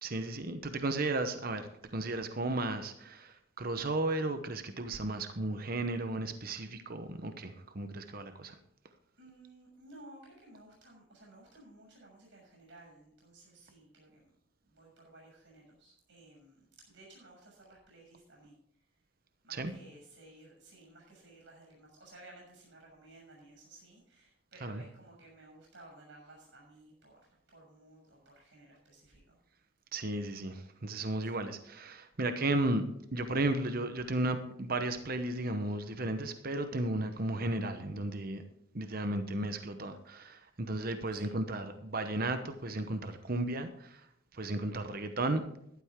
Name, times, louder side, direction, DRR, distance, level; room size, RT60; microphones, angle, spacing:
voice 1, 0.0-8.6 19.5-19.7 24.6-24.8 29.9-32.8 33.1-38.4 38.7-44.1 44.3-45.4, right 2 dB, 45° right, 8 dB, 0.9 m, -34 dB
voice 2, 9.2-14.3 14.7-18.8 19.4-29.4 31.2-31.6 41.1-41.4, right 2 dB, 60° right, -1 dB, 6.4 m, -56 dB
14.0 x 12.0 x 3.7 m, 0.74 s
head